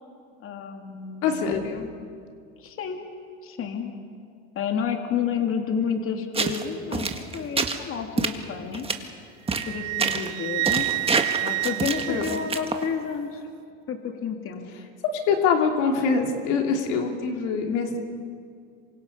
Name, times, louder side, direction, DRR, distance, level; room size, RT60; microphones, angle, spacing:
voice 1, 0.4-1.3 2.6-3.0 3.4-3.9 4.6-8.9 9.7-10.9 11.4-13.4 13.9-14.7, left 7 dB, 45° left, 4 dB, 2.6 m, -30 dB
voice 2, 1.2-1.9 12.1-12.3 15.0-18.0, left 5 dB, 70° left, 3 dB, 2.7 m, -24 dB
sound 1, 6.3-6.6 6.9-7.8 8.2-8.3 8.7-8.9 9.5-9.7 10.0-10.3 10.6-12.8, right 4 dB, 20° right, 1.8 m, -26 dB
Wind instrument woodwind instrument, 9.5-13.0, right 19 dB, 55° right, 0.5 m, -29 dB
27.0 x 24.5 x 5.6 m, 2.3 s
supercardioid pair, 95°, 31 cm